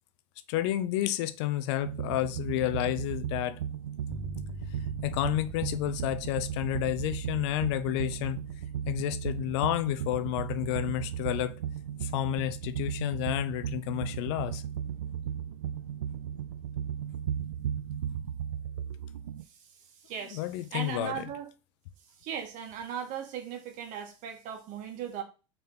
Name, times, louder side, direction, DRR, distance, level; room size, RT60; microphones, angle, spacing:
voice 1, 0.5-3.6 5.0-8.4 8.9-11.6 12.0-14.6 20.3-21.3, left 14 dB, 65° left, 0.7 m, -30 dB
sound 1, 1.8-19.4, right 9 dB, 85° right, 0.5 m, -36 dB
sound 2, 4.1-13.1, left 1 dB, 5° right, 1.4 m, -48 dB
voice 2, 20.1-20.4 20.7-21.5 22.2-25.2, right 8 dB, 55° right, 1.8 m, -37 dB
5.2 x 4.3 x 4.3 m
hypercardioid pair, 85°, 15 cm